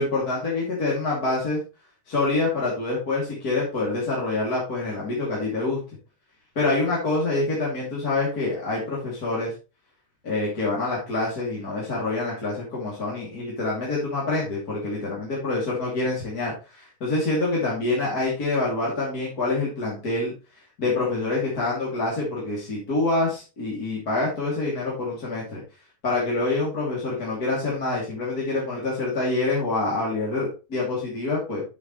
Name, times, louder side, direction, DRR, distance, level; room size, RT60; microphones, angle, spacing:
voice 1, 0.0-1.6 2.1-5.8 6.5-9.5 10.2-20.3 20.8-25.6 26.0-31.6, left 2 dB, 30° left, -6 dB, 2.9 m, -26 dB
9.3 x 7.1 x 3.1 m, 0.30 s
omnidirectional pair, 3.6 m